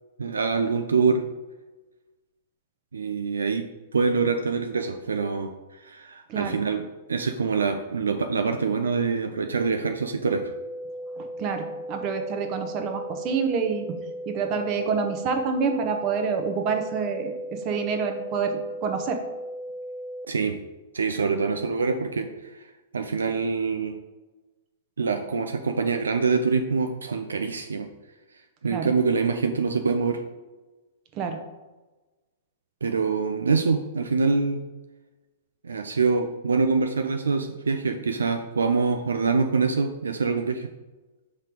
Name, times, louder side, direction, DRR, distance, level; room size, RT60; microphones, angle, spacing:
voice 1, 0.2-1.2 2.9-3.6 3.9-5.5 5.8-6.8 7.1-10.5 20.3-20.6 20.9-22.6 22.9-24.0 25.0-27.9 28.6-30.2 32.8-34.6 35.6-40.7, right 4 dB, 75° right, 5 dB, 0.4 m, -25 dB
sound 1, 10.2-20.3, equal, ahead, 0.4 m, -37 dB
voice 2, 11.2-13.9 14.3-19.2 28.7-28.9 31.2-31.4, right 5 dB, 35° right, 5 dB, 0.9 m, -27 dB
5.6 x 3.2 x 5.2 m, 1.2 s
figure-of-eight pair, 105°, 0 cm